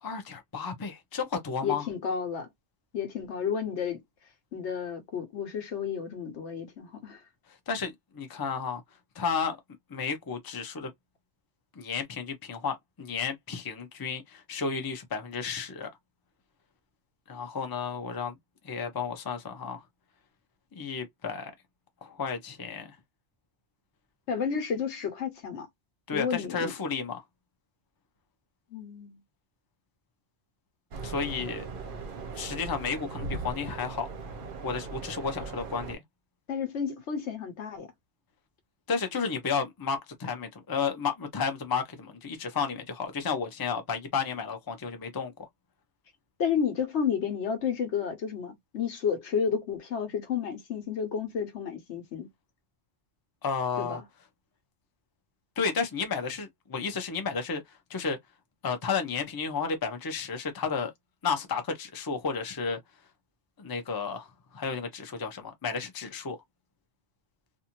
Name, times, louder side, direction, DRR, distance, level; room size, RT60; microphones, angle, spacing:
voice 1, 0.0-1.9 7.7-8.8 9.2-9.6 9.9-10.9 11.8-15.9 17.3-18.4 18.6-19.8 20.8-21.5 22.0-23.0 26.1-27.2 31.0-31.6 32.4-34.1 34.6-36.0 38.9-45.3 53.4-54.0 55.6-57.6 57.9-58.2 58.6-60.9 61.2-62.8 63.6-66.4, left 5 dB, 25° left, 0.5 m, -32 dB
voice 2, 1.6-2.5 2.9-4.0 4.5-7.2 24.3-25.7 26.1-26.7 28.7-29.2 36.5-37.9 46.4-52.3 53.8-54.0, left 7 dB, 75° left, 1.2 m, -31 dB
sound 1, 30.9-35.9, right 4 dB, 55° right, 0.8 m, -39 dB
2.6 x 2.4 x 2.9 m
omnidirectional pair, 1.2 m